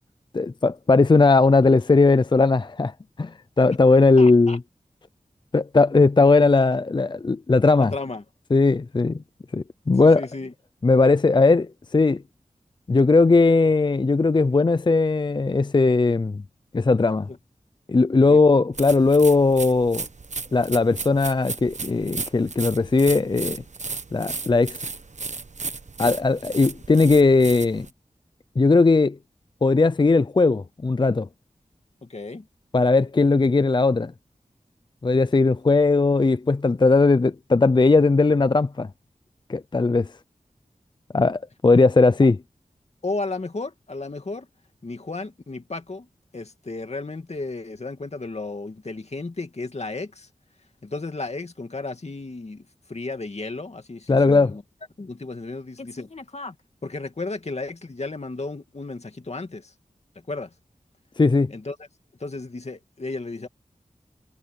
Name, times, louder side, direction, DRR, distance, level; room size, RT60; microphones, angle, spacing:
voice 1, 0.3-2.9 3.2-4.6 5.5-7.9 8.5-9.2 9.5-10.3 10.8-12.2 12.9-16.4 16.7-17.3 17.9-20.1 20.5-23.6 24.1-24.8 26.0-27.9 28.6-29.2 29.6-31.3 32.7-34.1 35.0-38.9 39.5-40.1 41.1-42.4 54.1-54.5 61.2-61.5, left 3 dB, 35° left, 0.5 m, -18 dB
voice 2, 4.2-4.6 7.8-8.2 10.0-10.5 17.3-17.4 18.3-18.4 26.0-26.1 32.0-32.5 43.0-44.5 44.8-46.1 46.3-50.3 50.8-52.6 52.9-54.6 55.0-56.5 56.8-59.7 60.3-60.5 61.5-61.8 62.2-63.5, left 3 dB, 55° left, 2.5 m, -33 dB
sound 1, 18.7-27.9, right 4 dB, 60° right, 1.3 m, -35 dB
wide cardioid pair, 70°, 13 cm